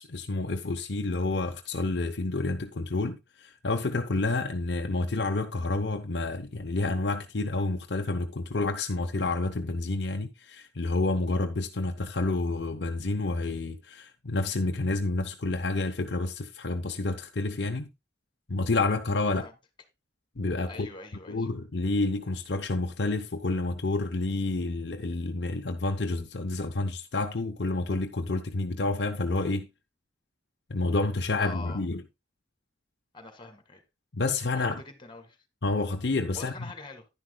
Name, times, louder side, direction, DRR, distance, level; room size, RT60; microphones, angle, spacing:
voice 1, 0.0-17.9 18.5-19.5 20.4-20.9 21.3-29.7 30.7-32.0 34.1-34.8 35.6-36.5, left 2 dB, 70° left, 0.8 m, -29 dB
voice 2, 20.7-21.5 31.4-31.8 33.1-33.8 34.5-35.4 36.3-37.1, left 3 dB, 30° left, 2.0 m, -44 dB
11.0 x 10.0 x 2.3 m
head